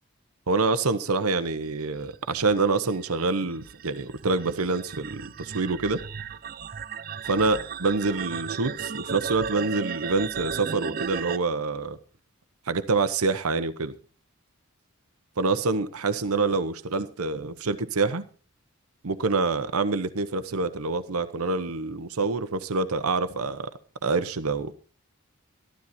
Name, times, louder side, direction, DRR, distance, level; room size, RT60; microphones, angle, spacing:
voice 1, 0.5-6.0 7.3-12.0 12.7-13.9 15.4-18.2 19.0-23.7 24.0-24.7, right 3 dB, 90° right, 1.0 m, -26 dB
sound 1, 2.1-11.4, right 7 dB, 40° right, 0.5 m, -35 dB
13.5 x 12.5 x 4.3 m
head